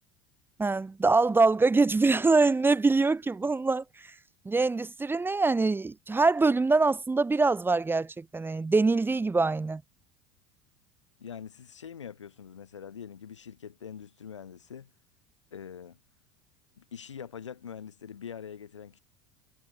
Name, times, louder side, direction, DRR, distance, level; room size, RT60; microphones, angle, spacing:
voice 1, 0.6-3.8 4.5-9.8, right 3 dB, 15° right, 2.1 m, -24 dB
voice 2, 11.2-14.9 15.5-16.0 16.8-19.0, left 7 dB, 75° left, 3.9 m, -43 dB
figure-of-eight pair, 70°, 15 cm